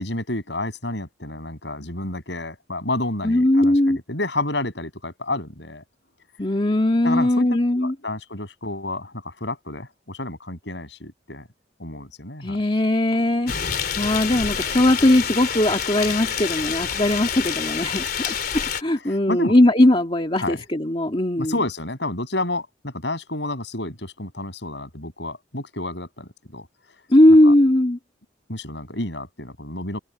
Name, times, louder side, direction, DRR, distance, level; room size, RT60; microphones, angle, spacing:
voice 1, 0.0-5.8 7.0-7.5 7.8-11.5 11.8-12.6 18.9-19.5 20.4-20.6 21.4-26.7 27.4-27.5 28.5-30.0, left 2 dB, 70° left, 7.3 m, -30 dB
voice 2, 3.2-4.0 6.4-7.9 12.4-21.5 27.1-28.0, left 1 dB, 30° left, 2.1 m, -19 dB
sound 1, 13.5-18.8, left 7 dB, 55° left, 3.4 m, -27 dB
head